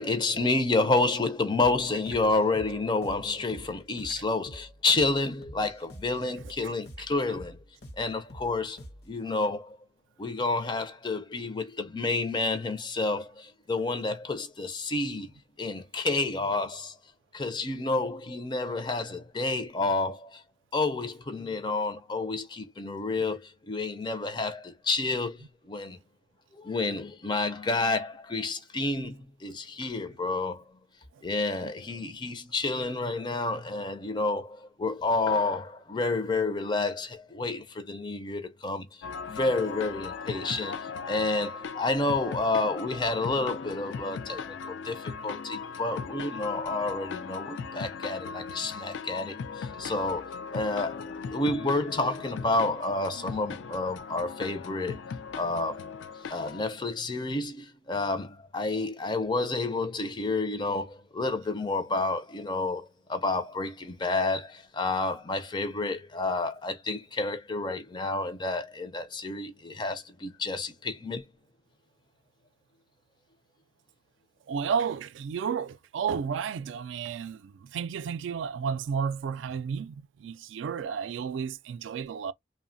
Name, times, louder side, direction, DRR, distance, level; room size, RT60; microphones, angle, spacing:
voice 1, 0.0-7.6 8.0-8.8 9.1-9.8 10.2-15.3 15.6-16.9 17.3-20.4 20.7-25.4 25.7-26.0 26.5-30.6 31.2-38.9 39.3-40.7 41.1-55.0 55.4-55.8 56.3-71.2, left 3 dB, 25° left, 0.4 m, -30 dB
sound 1, 1.6-9.2, equal, 55° left, 0.7 m, -47 dB
sound 2, 39.0-56.6, left 5 dB, 85° left, 0.4 m, -38 dB
voice 2, 74.5-82.3, right 6 dB, 90° right, 0.3 m, -32 dB
3.0 x 2.1 x 2.5 m
head